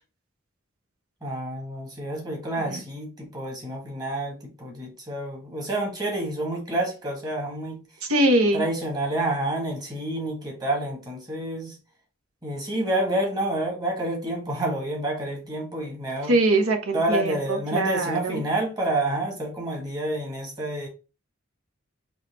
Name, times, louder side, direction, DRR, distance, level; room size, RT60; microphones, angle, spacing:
voice 1, 1.2-8.1 8.5-11.8 12.4-16.3 16.9-20.9, right 1 dB, 20° right, 1.3 m, -29 dB
voice 2, 8.1-8.6 16.3-18.4, right 2 dB, 85° right, 1.1 m, -22 dB
4.0 x 3.1 x 3.9 m
head